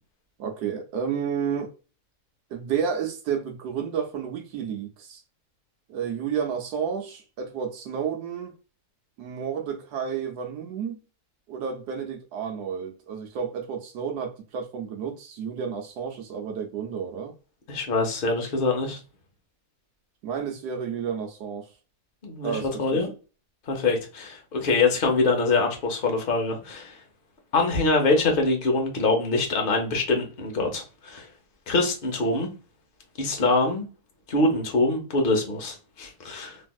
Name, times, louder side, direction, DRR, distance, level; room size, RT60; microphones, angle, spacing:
voice 1, 0.4-1.7 2.5-5.2 5.9-8.5 9.2-11.0 11.5-17.3 20.2-21.7 22.4-23.0, right 7 dB, 85° right, 1.1 m, -31 dB
voice 2, 17.7-19.0 22.2-23.1 23.7-27.0 27.5-31.3 31.7-32.5 33.2-33.9 34.3-36.6, left 3 dB, 40° left, 0.9 m, -24 dB
3.2 x 2.6 x 2.3 m
omnidirectional pair, 1.7 m